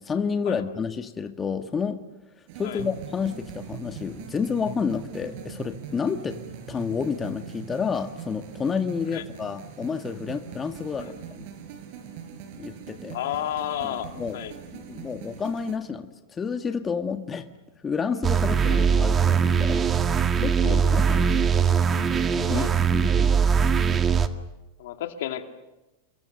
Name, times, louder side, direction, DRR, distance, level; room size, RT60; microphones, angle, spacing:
voice 1, 0.0-2.0 2.6-6.4 6.7-11.4 12.6-13.2 13.8-14.4 14.7-17.4 17.8-19.8 20.4-21.3 22.1-23.7, left 6 dB, 20° left, 6 dB, 1.7 m, -30 dB
sound 1, 2.5-15.8, right 8 dB, 60° right, 4.9 m, -41 dB
voice 2, 13.1-14.5 18.7-18.9 20.6-20.9 21.6-21.8 22.5-22.7 24.8-25.5, left 11 dB, 70° left, 6 dB, 2.5 m, -32 dB
sound 2, 18.2-24.3, right 6 dB, 25° right, 1.8 m, -21 dB
29.5 x 22.5 x 6.7 m, 1.0 s
hypercardioid pair, 105°, 0 cm